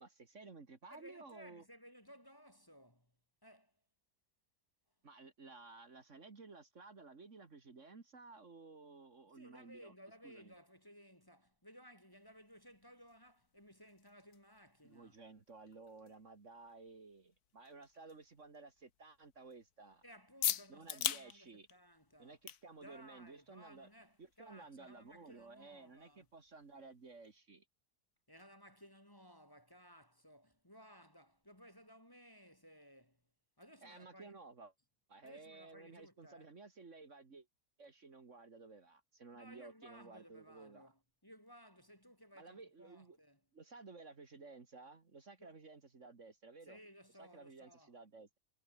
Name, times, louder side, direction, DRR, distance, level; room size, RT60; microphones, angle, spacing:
voice 1, 0.0-1.6 5.0-9.9 10.2-10.5 14.8-20.0 20.7-21.7 22.2-23.9 24.2-27.7 33.8-34.7 35.1-37.5 37.8-40.9 42.3-43.2 43.5-46.8 47.2-48.4, right 3 dB, 50° right, 2.4 m, -55 dB
voice 2, 0.9-3.2 3.4-3.8 9.3-15.2 20.0-22.4 22.8-26.3 28.3-33.2 33.6-34.5 35.2-36.5 39.3-43.4 45.4-45.6 46.6-48.0, equal, 15° left, 3.0 m, -59 dB
sound 1, 12.1-27.4, left 10 dB, 80° left, 1.5 m, -47 dB
omnidirectional pair, 1.6 m